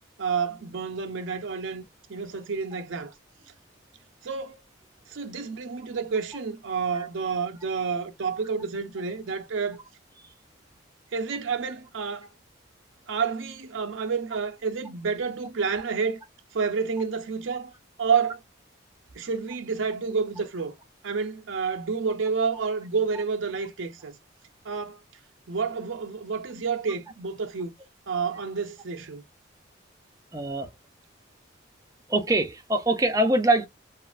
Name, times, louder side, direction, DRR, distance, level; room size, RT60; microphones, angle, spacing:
voice 1, 0.2-3.1 4.2-4.6 5.1-9.8 11.1-12.3 13.1-16.2 16.5-17.7 18.0-18.4 19.2-20.7 21.0-24.1 24.6-25.0 25.5-27.7 28.1-29.2, right 5 dB, 70° right, 0.5 m, -29 dB
voice 2, 30.3-30.7 32.1-33.7, right 1 dB, 15° right, 0.5 m, -23 dB
3.0 x 2.4 x 2.3 m
head